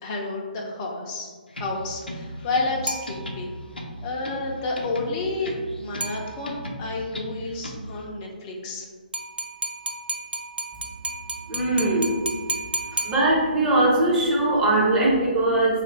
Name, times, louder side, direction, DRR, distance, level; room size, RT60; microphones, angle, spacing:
voice 1, 0.0-3.6 4.0-8.9 12.9-13.1, left 2 dB, 25° left, -1 dB, 0.5 m, -30 dB
sound 1, 1.5-8.0, equal, 80° left, 0.5 m, -37 dB
sound 2, 2.9-3.7 6.0-6.8 9.1-13.8, right 2 dB, 80° right, 0.4 m, -33 dB
voice 2, 11.5-12.2 13.0-15.8, right 2 dB, 15° right, -4 dB, 0.7 m, -21 dB
3.1 x 2.5 x 4.3 m, 1.5 s
figure-of-eight pair, 135°, 5 cm